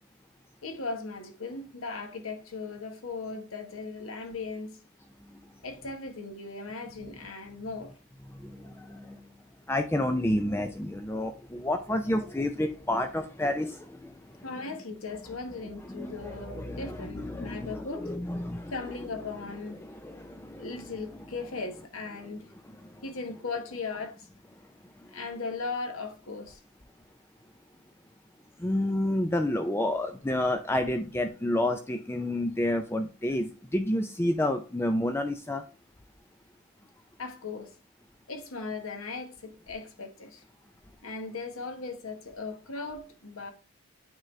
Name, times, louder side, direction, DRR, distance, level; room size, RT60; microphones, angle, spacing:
voice 1, 0.6-4.8 5.6-7.9 14.4-18.1 18.7-19.8 20.6-22.5 23.0-24.3 25.1-26.6 37.2-37.7 38.3-40.4 41.0-43.5, left 3 dB, 70° left, 1.2 m, -38 dB
voice 2, 8.4-9.2 9.7-14.1 15.8-18.7 19.8-20.7 28.6-35.6, left 1 dB, 10° left, 0.4 m, -30 dB
9.0 x 3.8 x 3.1 m
head